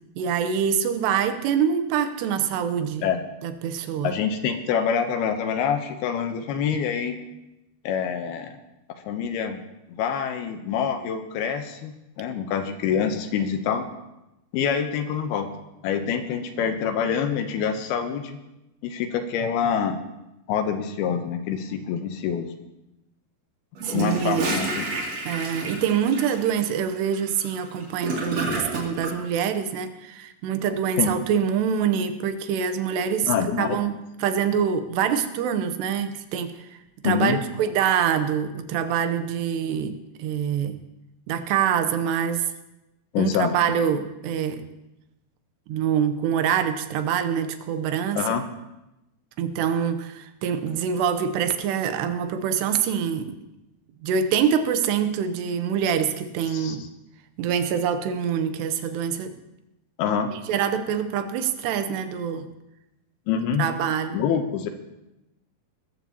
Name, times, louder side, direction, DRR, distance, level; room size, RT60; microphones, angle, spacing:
voice 1, 0.2-3.1 3.4-4.1 23.8-24.5 25.3-36.5 37.0-40.8 41.3-42.4 43.2-44.6 45.7-48.2 49.4-53.4 54.0-56.8 57.4-59.3 60.5-62.5 63.6-64.2, right 8 dB, 80° right, 9 dB, 3.0 m, -25 dB
voice 2, 4.0-7.2 7.8-8.6 9.1-9.6 9.9-13.9 14.5-15.5 15.8-18.4 18.8-20.0 20.5-22.5 23.9-24.9 31.0-31.1 33.3-33.8 37.0-37.4 43.1-43.6 48.2-48.4 56.5-56.8 60.0-60.3 63.3-63.7 64.1-64.7, left 7 dB, 80° left, 7 dB, 2.6 m, -26 dB
Gurgling / Toilet flush, 23.8-29.1, right 2 dB, 45° right, 3.5 m, -30 dB
20.5 x 14.0 x 2.9 m, 0.93 s
omnidirectional pair, 4.8 m